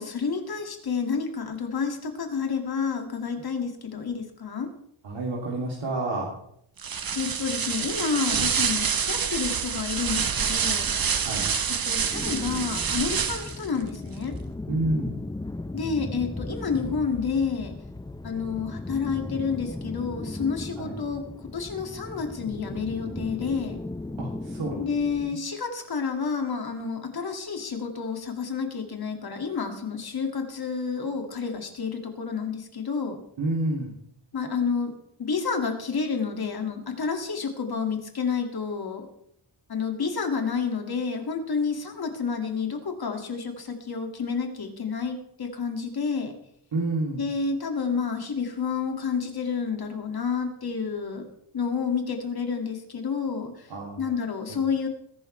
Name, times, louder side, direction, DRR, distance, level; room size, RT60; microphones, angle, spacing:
voice 1, 0.0-4.7 7.2-10.9 11.8-14.3 15.7-17.7 18.2-21.2 21.5-23.8 24.8-33.2 34.3-34.9 35.2-39.1 39.7-46.3 47.2-51.2 51.5-53.7 54.0-54.9, left 5 dB, 50° left, 4 dB, 2.4 m, -29 dB
voice 2, 5.0-6.3 11.2-11.5 14.7-15.2 20.8-20.9 24.2-24.8 33.4-33.9 46.7-47.2 53.7-54.0 54.5-54.6, right 2 dB, 65° right, -4 dB, 3.2 m, -29 dB
sound 1, 6.8-13.7, right 6 dB, 45° right, 1.1 m, -27 dB
sound 2, 12.1-25.3, left 2 dB, 10° left, 0.4 m, -36 dB
20.5 x 11.0 x 3.4 m, 0.70 s
wide cardioid pair, 145°, 47 cm